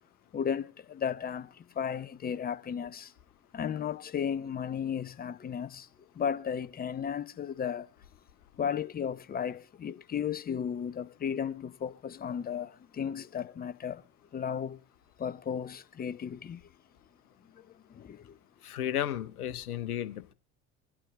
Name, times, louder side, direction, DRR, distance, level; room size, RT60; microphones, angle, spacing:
voice 1, 0.3-3.1 3.5-5.9 6.1-7.9 8.6-14.0 14.3-14.8 15.2-16.6 17.5-18.4, left 8 dB, 20° left, 0.6 m, -34 dB
voice 2, 18.6-20.3, left 11 dB, 75° left, 0.9 m, -33 dB
25.0 x 8.4 x 2.5 m
figure-of-eight pair, 60°, 45 cm